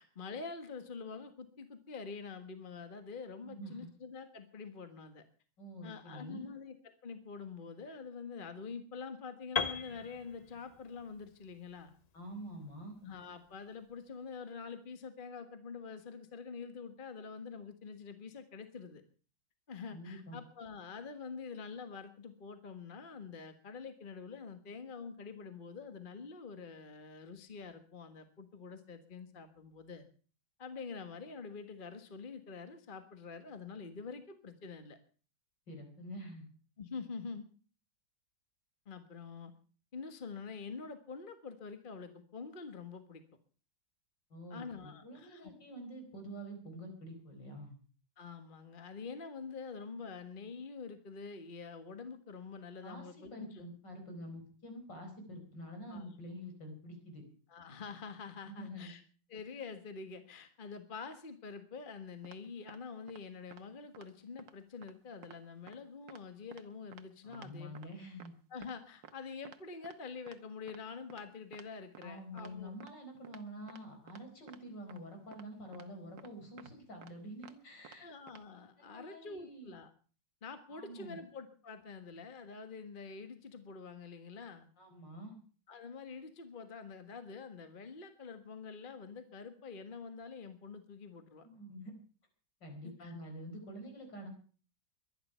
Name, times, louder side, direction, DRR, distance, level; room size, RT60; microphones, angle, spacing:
voice 1, 0.0-5.2 5.8-11.9 13.0-19.0 19.7-30.1 30.6-35.0 36.8-37.5 38.8-39.5 39.9-43.2 44.5-45.5 48.2-53.6 55.9-56.0 57.5-59.0 59.3-67.9 68.5-72.7 78.0-79.9 80.4-84.7 85.7-91.5 92.8-93.1, left 5 dB, 30° left, 8 dB, 1.5 m, -46 dB
voice 2, 3.4-3.9 5.6-6.4 12.1-12.9 19.9-20.4 35.7-36.5 44.3-47.7 52.8-57.2 58.5-58.9 67.2-68.4 72.0-78.1 78.8-79.7 80.7-81.2 84.8-85.4 91.4-91.9 92.6-94.3, equal, 75° left, 4 dB, 5.3 m, -47 dB
Piano, 9.6-13.5, left 5 dB, 50° left, 0.4 m, -40 dB
sound 1, 62.2-62.4 62.7-62.8 63.1-63.2 63.5-63.6 63.9-64.1 64.4-64.5 64.8-64.9 65.2-65.4 65.7-65.8 66.1-66.2 66.5-66.6 66.9-67.0 67.3-67.5 67.8-67.9 68.2-68.3 68.6-68.7 69.0-69.1 69.5-69.6 69.8-70.0 70.3-70.4 70.7-70.8 71.1-71.2 71.5-71.7 72.0-72.1 72.4-72.5 72.8-72.9 73.2-73.4 73.7-73.8 74.1-74.2 74.5-74.6 74.9-75.0 75.3-75.4 75.7-75.9 76.2-76.3 76.6-76.7 77.0-77.1 77.4-77.5 77.8-78.0 78.3-78.4, right 8 dB, 80° right, 1.9 m, -53 dB
22.5 x 10.5 x 5.6 m, 0.41 s
omnidirectional pair, 2.0 m